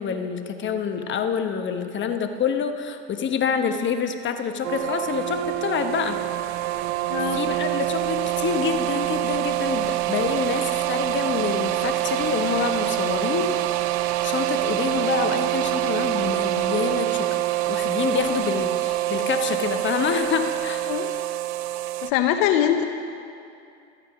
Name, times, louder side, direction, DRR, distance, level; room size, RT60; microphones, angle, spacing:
voice 1, 0.0-6.2 7.1-13.8 14.2-20.8, left 6 dB, 35° left, 7 dB, 1.0 m, -27 dB
sound 1, 4.6-22.1, right 15 dB, 60° right, 0.6 m, -25 dB
voice 2, 7.1-7.4 20.9-21.1 22.0-22.8, left 10 dB, 70° left, 7 dB, 0.9 m, -22 dB
13.0 x 10.0 x 5.9 m, 2.5 s
supercardioid pair, 90°, 31 cm